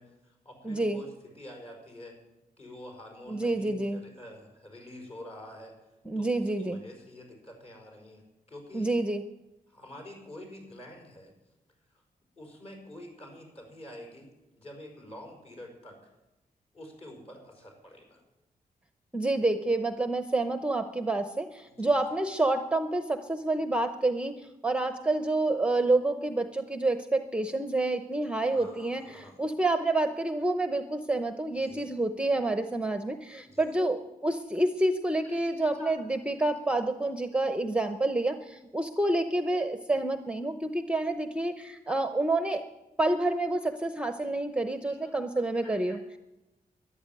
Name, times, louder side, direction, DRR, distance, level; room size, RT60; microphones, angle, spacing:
voice 1, 0.0-2.2 2.6-8.9 9.7-11.3 12.4-14.3 14.6-16.1 16.7-18.2 21.6-22.0 28.4-29.4 31.6-31.9 33.5-33.7 35.2-36.0 44.9-45.1 45.6-46.0, left 1 dB, 40° left, 2 dB, 5.4 m, -47 dB
voice 2, 0.6-1.0 3.3-4.0 6.1-6.8 8.7-9.2 19.1-42.6 43.0-46.0, right 2 dB, 5° right, 8 dB, 0.7 m, -28 dB
13.5 x 11.0 x 9.1 m, 0.99 s
wide cardioid pair, 145°, 15 cm